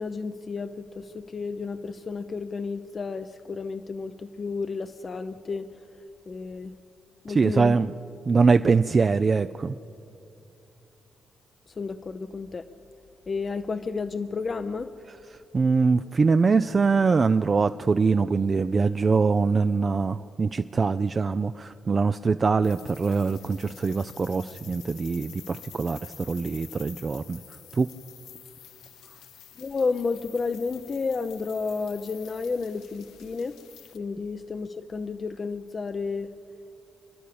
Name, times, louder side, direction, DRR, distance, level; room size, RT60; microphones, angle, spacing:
voice 1, 0.0-5.8 6.3-6.8 7.2-7.8 11.7-12.7 13.3-14.9 29.6-33.6 33.9-36.3, left 4 dB, 45° left, 9 dB, 0.7 m, -31 dB
voice 2, 7.3-7.9 8.3-9.7 15.5-27.4 27.7-27.9, right 4 dB, 45° right, 10 dB, 0.5 m, -23 dB
sound 1, 22.6-34.0, left 10 dB, 80° left, 0.6 m, -49 dB
27.5 x 11.0 x 8.6 m, 2.6 s
supercardioid pair, 45°, 0 cm